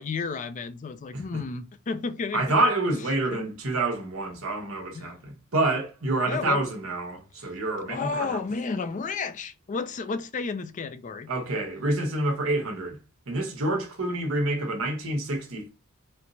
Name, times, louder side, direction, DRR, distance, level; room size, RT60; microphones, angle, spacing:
voice 1, 0.0-2.4 3.3-3.4 4.9-5.2 6.3-6.6 7.9-11.3, left 4 dB, 35° left, 0.4 m, -32 dB
voice 2, 2.3-8.4 11.3-13.0 13.3-15.7, right 2 dB, 75° right, 1.2 m, -27 dB
4.3 x 2.0 x 2.6 m
head